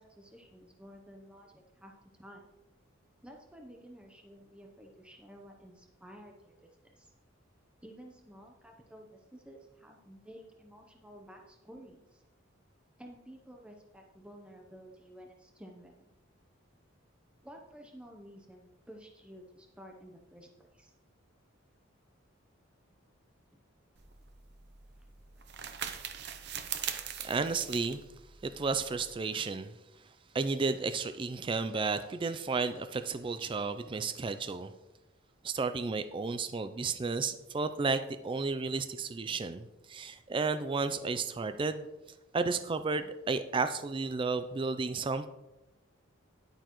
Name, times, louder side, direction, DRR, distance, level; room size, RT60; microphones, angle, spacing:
voice 1, 0.0-1.9 2.2-2.4 3.2-6.7 7.0-7.1 7.8-12.2 13.0-16.1 17.4-20.9 23.5-23.6 25.3-25.4, equal, 5° right, 1 dB, 0.7 m, -52 dB
sound 1, 24.0-29.2, right 9 dB, 55° right, 0.7 m, -41 dB
voice 2, 27.2-28.0 28.4-29.7 30.3-34.7 35.4-41.9 42.3-45.3, right 4 dB, 25° right, 10 dB, 0.3 m, -32 dB
10.5 x 8.9 x 3.0 m, 1.0 s
head